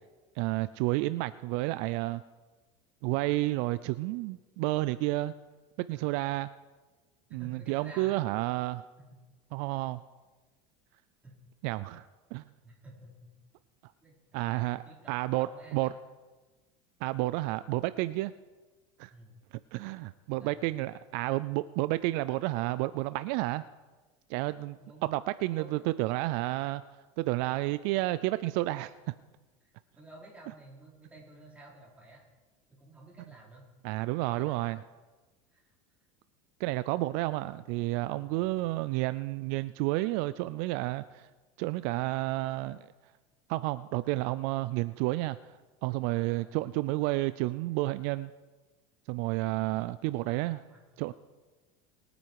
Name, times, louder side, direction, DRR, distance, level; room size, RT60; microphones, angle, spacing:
voice 1, 0.4-2.2 3.0-5.3 5.8-6.5 7.3-8.9 9.5-10.0 11.6-12.1 12.3-12.4 14.3-14.8 15.1-15.5 15.7-15.9 17.0-18.3 19.0-19.1 19.7-23.6 24.3-26.8 27.2-28.9 33.8-34.8 36.6-41.3 41.6-42.9 43.5-45.5 45.8-48.3 49.1-50.6 51.0-51.1, right 18 dB, 65° right, 15 dB, 0.5 m, -31 dB
voice 2, 7.3-8.2 9.1-9.2 9.6-9.7 11.2-11.3 12.6-13.3 14.0-16.0 17.2-17.4 19.1-19.4 20.3-20.9 24.8-25.1 25.5-25.8 29.6-32.2 32.8-33.7 34.1-34.6 35.5-35.7 46.3-46.6 50.1-50.8, right 1 dB, 10° right, -4 dB, 4.7 m, -52 dB
21.5 x 9.3 x 4.8 m, 1.3 s
supercardioid pair, 130°, 15 cm